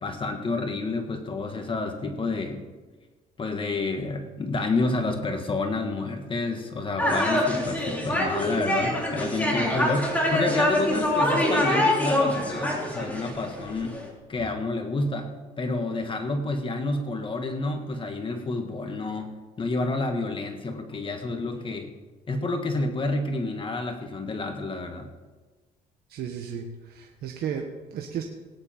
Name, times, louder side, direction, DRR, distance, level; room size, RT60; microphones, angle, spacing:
voice 1, 0.0-2.6 3.4-14.0 14.3-15.3 15.6-21.9 22.3-25.1, left 2 dB, 30° left, 5 dB, 1.5 m, -29 dB
sound 1, 7.0-14.0, left 1 dB, 10° left, 3.8 m, -25 dB
voice 2, 26.1-28.2, right 8 dB, 65° right, 2 dB, 1.5 m, -34 dB
19.0 x 10.0 x 4.4 m, 1.3 s
cardioid pair, 110°, 17 cm